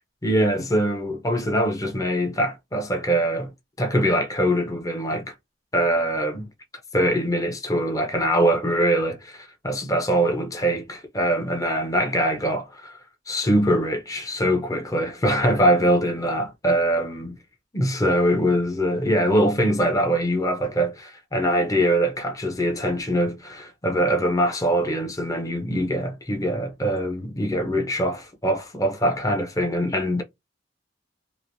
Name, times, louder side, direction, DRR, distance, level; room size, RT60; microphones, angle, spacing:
voice 1, 0.2-3.5 3.8-5.3 5.7-6.5 6.9-13.0 13.3-17.3 17.7-30.2, equal, 20° left, 0.6 m, -23 dB
3.0 x 2.4 x 2.6 m
head